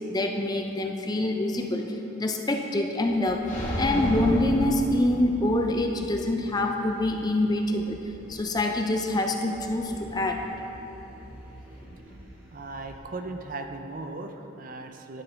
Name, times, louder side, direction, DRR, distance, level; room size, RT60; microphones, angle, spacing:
voice 1, 0.1-1.8 2.2-3.4 3.8-8.0 8.3-10.4, left 1 dB, 20° left, 4 dB, 0.4 m, -25 dB
sound 1, 3.1-13.0, equal, 10° right, 2.0 m, -47 dB
sound 2, 3.5-5.6, equal, 40° left, 1.5 m, -30 dB
voice 2, 12.5-15.2, right 2 dB, 40° right, 5 dB, 0.4 m, -37 dB
11.5 x 5.9 x 3.4 m, 2.9 s
head